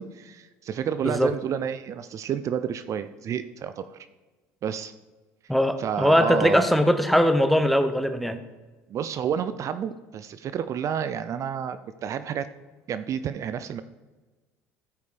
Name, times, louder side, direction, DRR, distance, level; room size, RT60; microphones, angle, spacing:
voice 1, 0.0-4.1 4.6-4.9 5.8-6.7 8.9-12.5 12.9-13.8, right 8 dB, 45° right, 12 dB, 0.5 m, -30 dB
voice 2, 5.5-8.4, equal, ahead, 9 dB, 0.9 m, -21 dB
14.0 x 5.2 x 5.1 m, 1.3 s
supercardioid pair, 95°, 7 cm